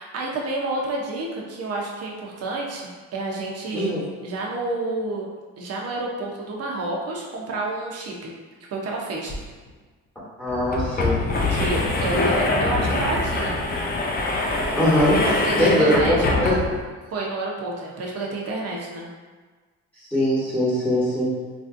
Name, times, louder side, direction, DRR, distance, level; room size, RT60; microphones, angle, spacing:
voice 1, 0.0-3.9 4.2-5.3 5.6-8.3 8.7-9.3 11.5-13.5 15.4-16.2 17.1-19.1, right 2 dB, 55° right, -2 dB, 0.7 m, -29 dB
sound 1, 9.3-9.4 9.7-9.8 10.5-16.9, left 2 dB, 30° left, 0.5 m, -24 dB
voice 2, 10.4-11.2 14.8-15.2 15.6-16.6 20.1-21.3, left 1 dB, 5° left, -9 dB, 1.1 m, -21 dB
3.2 x 2.6 x 2.5 m, 1.4 s
cardioid pair, 90°, 30 cm